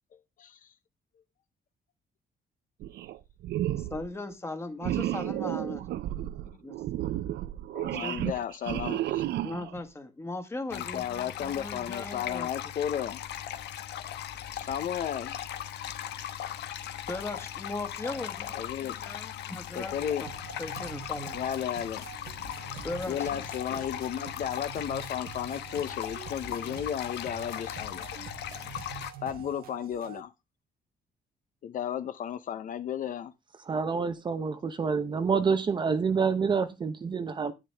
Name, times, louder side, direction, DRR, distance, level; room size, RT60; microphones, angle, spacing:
voice 1, 0.4-0.7 7.7-9.2 10.7-13.2 14.6-15.4 18.5-19.0 19.8-20.2 21.3-22.1 23.1-28.3 29.2-30.3 31.6-33.3, left 9 dB, 50° left, 0.7 m, -34 dB
sound 1, 2.8-3.2 3.4-4.1 4.8-9.8, right 13 dB, 85° right, 0.6 m, -32 dB
voice 2, 3.8-5.8 6.2-6.3 6.6-6.8 8.0-8.3 9.4-12.5 17.1-20.3 20.6-21.4 22.8-23.3, left 2 dB, 15° left, 1.5 m, -38 dB
sound 2, 10.7-29.1, left 11 dB, 90° left, 1.1 m, -38 dB
sound 3, 19.9-30.2, right 9 dB, 60° right, 1.2 m, -46 dB
voice 3, 33.7-37.5, right 5 dB, 25° right, 0.7 m, -27 dB
10.0 x 9.7 x 3.4 m
cardioid pair, 180°, 17 cm